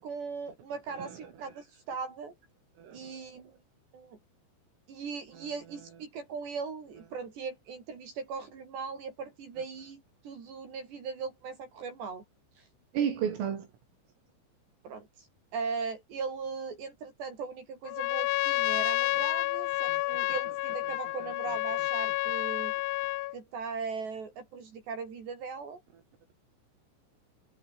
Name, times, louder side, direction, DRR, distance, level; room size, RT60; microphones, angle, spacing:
voice 1, 0.0-2.4 2.9-3.5 3.9-4.2 4.9-12.2 12.6-12.7 14.8-15.3 15.5-22.7 23.3-25.8, right 5 dB, 55° right, 6.3 m, -39 dB
voice 2, 2.8-3.1 5.4-5.5 12.9-13.7 19.9-20.0, right 8 dB, 75° right, 6.4 m, -32 dB
Trumpet, 17.9-23.4, left 19 dB, 85° left, 3.6 m, -30 dB
omnidirectional pair, 6.0 m